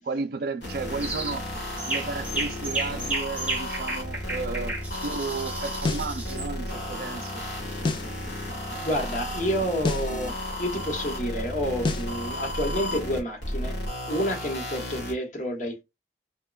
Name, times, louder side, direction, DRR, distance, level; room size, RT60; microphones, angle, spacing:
voice 1, 0.0-1.4 1.9-4.8 5.0-7.4, right 4 dB, 60° right, 0.4 m, -33 dB
sound 1, 0.6-15.1, left 1 dB, 75° left, 1.1 m, -33 dB
sound 2, 1.0-1.4 1.8-6.5, right 2 dB, 10° right, 0.6 m, -33 dB
sound 3, 5.8-6.1 7.8-8.1 9.8-10.1 11.8-12.1, left 3 dB, 25° left, 0.3 m, -28 dB
voice 2, 8.8-13.7 14.1-15.8, equal, 45° left, 1.0 m, -29 dB
3.0 x 2.1 x 2.3 m
head